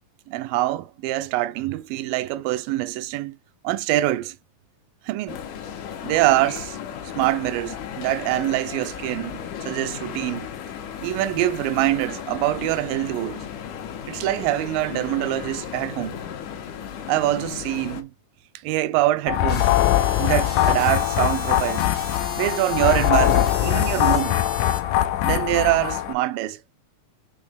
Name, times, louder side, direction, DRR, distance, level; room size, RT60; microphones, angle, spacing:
voice 1, 0.3-3.4 3.6-4.4 5.1-5.4 6.0-6.8 7.2-10.5 11.0-13.4 14.1-16.2 17.1-18.1 18.6-19.7 20.2-21.9 22.4-24.4 25.2-26.6, right 16 dB, 80° right, 2.2 m, -24 dB
sound 1, 5.3-18.0, left 8 dB, 70° left, 2.2 m, -35 dB
sound 2, 19.3-26.1, left 13 dB, 85° left, 1.8 m, -21 dB
sound 3, 19.5-24.8, left 2 dB, 35° left, 0.8 m, -36 dB
6.5 x 3.1 x 5.1 m
omnidirectional pair, 4.1 m